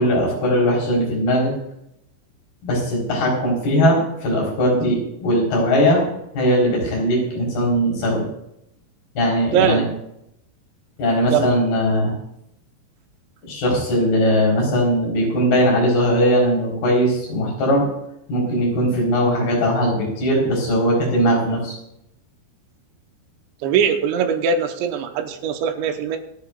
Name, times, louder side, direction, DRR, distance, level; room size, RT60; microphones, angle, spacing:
voice 1, 0.0-1.5 2.6-6.0 6.3-8.3 9.2-9.8 11.0-12.1 13.5-17.9 18.3-21.8, equal, 60° left, -2 dB, 5.9 m, -19 dB
voice 2, 9.5-9.9 11.3-11.6 23.6-26.2, right 7 dB, 85° right, 5 dB, 3.3 m, -21 dB
26.5 x 9.3 x 2.4 m, 0.78 s
omnidirectional pair, 5.1 m